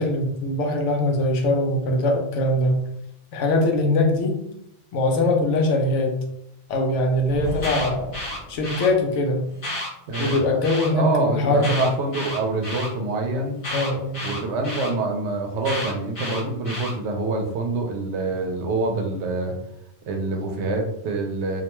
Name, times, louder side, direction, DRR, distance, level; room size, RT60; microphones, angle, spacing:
voice 1, 0.0-2.8 3.3-4.4 4.9-6.2 6.7-8.1 8.5-9.5 10.2-11.8 13.7-14.2, left 2 dB, 80° left, 2 dB, 0.9 m, -22 dB
Thunder, 6.9-9.2, right 1 dB, 5° right, 0.7 m, -39 dB
Alarm, 7.4-8.9 9.5-10.9 11.6-12.9 13.6-14.9 15.6-16.9, left 1 dB, 35° left, 0.7 m, -31 dB
voice 2, 10.1-13.6 14.2-19.6 20.1-21.6, right 2 dB, 75° right, 2 dB, 0.8 m, -26 dB
2.4 x 2.2 x 2.9 m, 0.78 s
omnidirectional pair, 1.2 m